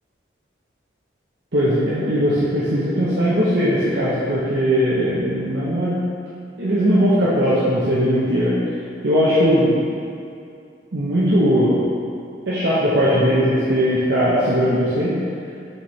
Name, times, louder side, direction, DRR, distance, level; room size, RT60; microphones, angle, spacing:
voice 1, 1.5-5.9 6.6-8.5 9.0-9.8 10.9-11.8 12.5-15.1, equal, 70° right, -9 dB, 0.9 m, -19 dB
6.5 x 4.5 x 3.3 m, 2.5 s
head